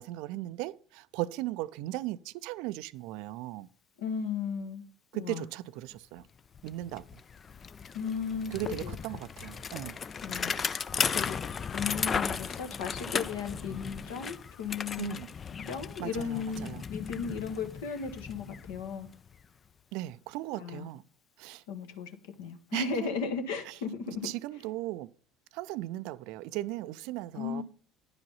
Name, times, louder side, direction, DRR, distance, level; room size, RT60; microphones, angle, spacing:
voice 1, 0.0-3.7 5.1-6.3 6.6-7.2 8.5-10.0 15.0-15.3 16.0-16.8 19.9-21.0 21.4-21.6 22.7-23.1 23.7-23.8 24.2-25.1 25.5-27.6, right 16 dB, 60° right, 0.4 m, -37 dB
voice 2, 4.0-4.8 5.1-5.4 7.9-9.0 10.2-10.5 11.1-11.4 11.7-15.2 15.5-19.1 20.6-20.9 21.7-22.1 22.4-24.3 27.3-27.6, left 6 dB, 65° left, 1.3 m, -35 dB
Bicycle, 6.2-6.3 6.5-19.5, left 6 dB, 30° left, 0.4 m, -36 dB
10.0 x 5.0 x 5.5 m
figure-of-eight pair, 65°, 0 cm